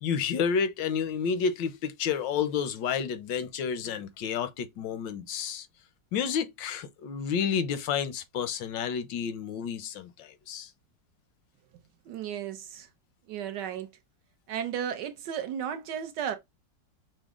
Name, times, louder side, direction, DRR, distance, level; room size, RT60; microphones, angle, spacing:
voice 1, 0.0-5.7 6.1-10.7, left 7 dB, 85° left, 1.4 m, -30 dB
voice 2, 12.1-12.9 13.3-13.9 14.5-16.4, right 9 dB, 75° right, 1.2 m, -34 dB
6.1 x 2.1 x 3.6 m
omnidirectional pair, 2.0 m